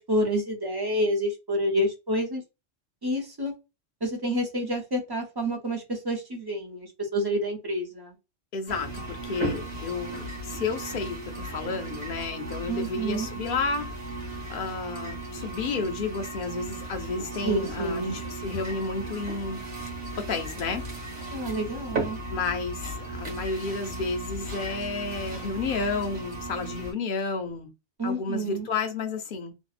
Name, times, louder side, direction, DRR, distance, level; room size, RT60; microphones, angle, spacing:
voice 1, 0.0-2.4 3.0-3.5 4.0-8.1 12.7-13.3 17.4-18.2 21.3-22.2 28.0-28.7, equal, 35° right, 0.4 m, -28 dB
voice 2, 8.5-13.9 14.5-19.6 20.2-20.9 22.3-27.7 28.0-29.5, left 4 dB, 60° left, 0.6 m, -31 dB
sound 1, 8.7-26.9, right 2 dB, 50° right, 1.2 m, -36 dB
2.6 x 2.1 x 2.4 m
omnidirectional pair, 1.3 m